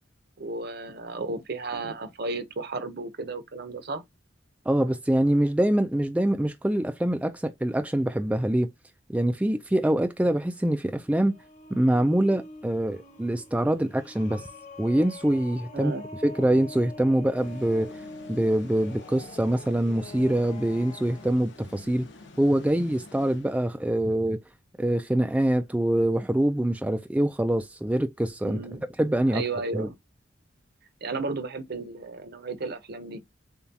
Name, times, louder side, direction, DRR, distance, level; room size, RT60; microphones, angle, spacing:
voice 1, 0.4-4.0 15.7-16.0 28.4-28.9 29.3-29.9 31.0-33.2, right 3 dB, 55° right, 0.8 m, -33 dB
voice 2, 4.7-8.7 9.1-11.4 11.7-14.5 14.8-15.9 16.2-18.0 18.3-22.1 22.4-24.4 24.8-28.6 29.0-29.4 29.7-29.9, right 1 dB, 5° right, 0.3 m, -24 dB
sound 1, 10.8-21.3, left 2 dB, 40° left, 1.2 m, -45 dB
sound 2, 17.4-24.0, left 3 dB, 70° left, 1.2 m, -49 dB
7.0 x 2.3 x 2.7 m
head